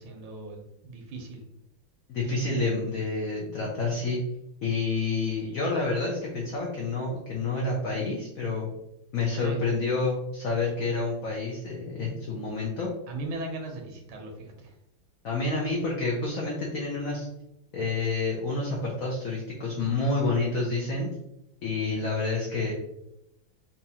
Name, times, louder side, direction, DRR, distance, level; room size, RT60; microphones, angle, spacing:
voice 1, 0.0-1.4 9.4-9.6 13.1-14.7, right 2 dB, 85° right, 2 dB, 1.5 m, -38 dB
voice 2, 2.1-4.2 4.6-8.7 9.1-12.9 15.2-17.3 17.7-21.1 21.6-22.7, left 3 dB, 80° left, -2 dB, 0.7 m, -28 dB
4.1 x 2.4 x 2.7 m, 0.85 s
omnidirectional pair, 2.2 m